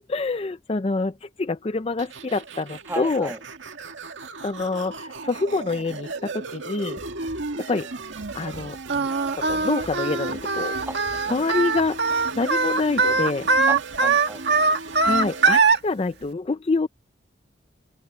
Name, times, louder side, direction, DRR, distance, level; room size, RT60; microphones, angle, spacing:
voice 1, 0.0-3.3 4.4-7.0 7.7-7.9 8.3-8.8 9.3-10.7 11.3-12.0 12.3-13.5 15.0-16.9, left 3 dB, 30° left, 0.4 m, -26 dB
sound 1, 2.0-15.6, right 3 dB, 80° right, 2.0 m, -36 dB
voice 2, 2.9-3.4 10.9-11.0 11.3-11.5 13.7-14.4, right 1 dB, 10° right, 1.8 m, -34 dB
sound 2, 7.0-9.2 9.5-11.8, right 1 dB, 45° right, 4.7 m, -47 dB
Singing, 8.9-15.8, right 4 dB, 65° right, 1.6 m, -21 dB
open air
head